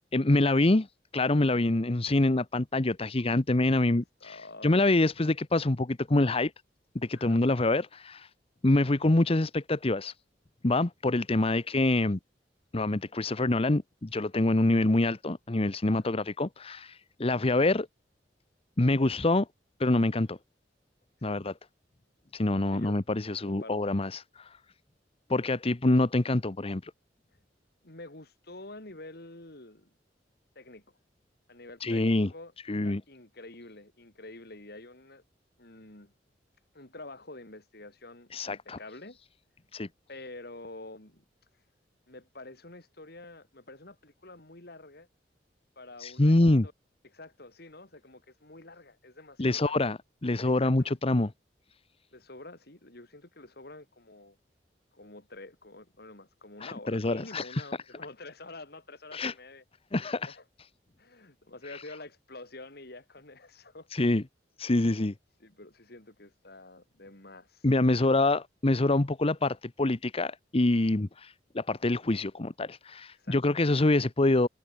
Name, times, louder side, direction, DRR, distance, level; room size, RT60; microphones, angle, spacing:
voice 1, 0.1-0.9 1.1-4.4 4.6-6.5 7.0-8.3 8.6-10.1 10.6-12.2 12.7-17.9 18.8-19.5 19.8-20.4 21.2-21.5 22.3-24.6 25.3-26.9 31.8-32.3 32.7-33.0 38.3-38.8 39.7-39.9 46.0-46.7 49.4-51.3 56.6-57.6 59.1-59.3 59.9-60.3 63.9-64.2 64.6-65.1 67.6-74.5, left 2 dB, 35° left, 0.9 m, -26 dB
voice 2, 4.2-4.8 7.1-7.5 21.2-21.4 22.7-23.0 23.5-24.0 27.8-29.9 30.6-30.9 31.5-32.5 32.8-35.2 35.6-36.1 36.7-39.2 40.1-41.2 42.1-45.1 45.8-46.7 47.0-49.9 50.4-51.0 52.1-54.4 54.9-59.6 60.3-60.4 61.0-63.9 65.4-67.7 73.2-73.8, left 2 dB, 60° left, 3.9 m, -48 dB
head